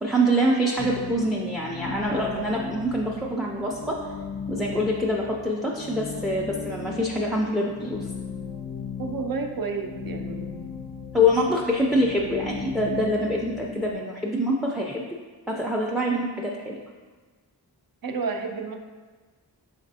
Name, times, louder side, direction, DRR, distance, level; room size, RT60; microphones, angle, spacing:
voice 1, 0.0-4.0 4.5-8.1 11.1-15.0 15.5-16.8, equal, ahead, -2 dB, 0.4 m, -25 dB
sound 1, 0.8-13.9, left 5 dB, 70° left, 0.5 m, -37 dB
voice 2, 9.0-10.5 11.8-11.9 18.0-18.8, right 4 dB, 55° right, 4 dB, 0.5 m, -31 dB
5.1 x 3.3 x 2.7 m, 1.4 s
wide cardioid pair, 55°, 43 cm